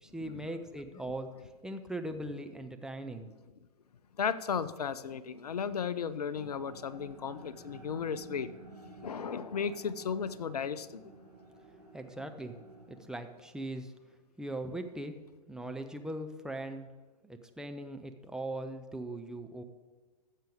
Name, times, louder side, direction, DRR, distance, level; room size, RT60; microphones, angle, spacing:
voice 1, 0.0-3.3 11.9-12.5 12.9-13.9 14.4-15.1 15.5-16.9 17.2-19.6, right 1 dB, 5° right, 5 dB, 0.6 m, -40 dB
voice 2, 4.2-8.5 9.0-11.0, left 6 dB, 70° left, 16 dB, 0.6 m, -35 dB
sound 1, 6.3-13.0, right 2 dB, 90° right, 3.7 m, -52 dB
15.5 x 7.4 x 3.6 m, 1.4 s
figure-of-eight pair, 105°, 21 cm